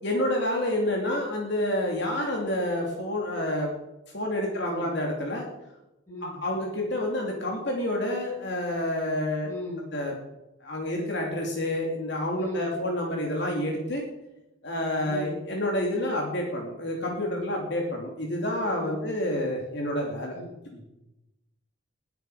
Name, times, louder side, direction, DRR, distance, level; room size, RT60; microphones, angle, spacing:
voice 1, 0.0-3.7 4.1-5.5 6.2-9.5 9.9-10.1 10.6-14.0 14.6-20.4 20.7-20.8, left 1 dB, 55° left, 0 dB, 2.9 m, -28 dB
voice 2, 6.1-6.4 9.4-9.9 12.3-12.7 15.0-15.4 18.8-19.0 20.3-20.5, equal, 15° left, -4 dB, 5.7 m, -37 dB
20.5 x 9.2 x 5.0 m, 0.92 s
head